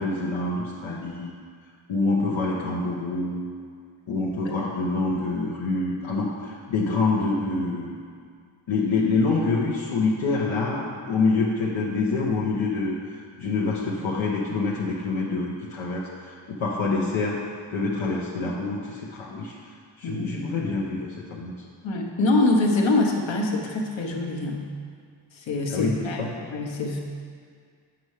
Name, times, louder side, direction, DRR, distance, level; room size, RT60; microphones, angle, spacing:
voice 1, 0.0-1.3 1.9-3.5 4.1-8.0 8.7-13.0 13.4-17.4 17.7-19.5 20.0-21.5 25.7-26.4, left 3 dB, 90° left, -3 dB, 0.8 m, -26 dB
voice 2, 21.8-24.6 25.3-27.0, left 2 dB, 75° left, 0 dB, 1.1 m, -24 dB
7.1 x 5.5 x 4.7 m, 2.1 s
cardioid pair, 65°, 47 cm